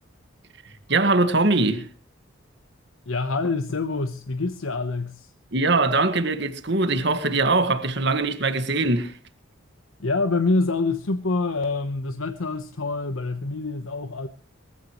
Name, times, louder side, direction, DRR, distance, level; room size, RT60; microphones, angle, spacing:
voice 1, 0.7-1.9 5.5-9.2, right 3 dB, 60° right, 1.8 m, -22 dB
voice 2, 3.1-5.3 10.0-14.3, left 3 dB, 90° left, 1.0 m, -26 dB
22.5 x 15.0 x 3.2 m
head